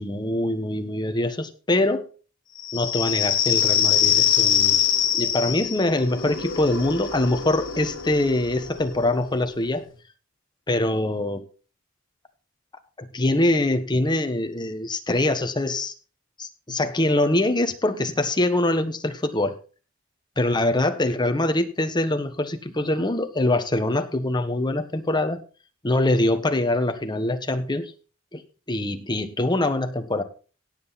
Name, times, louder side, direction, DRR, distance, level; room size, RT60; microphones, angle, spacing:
voice 1, 0.0-2.1 2.7-4.8 5.1-9.8 10.7-11.5 13.0-15.9 16.4-19.5 20.4-25.4 25.8-27.9 28.3-28.4 28.7-30.2, left 1 dB, 20° left, 8 dB, 1.3 m, -24 dB
sound 1, 2.6-9.9, left 9 dB, 65° left, 1.9 m, -24 dB
17.0 x 8.0 x 4.2 m, 0.37 s
head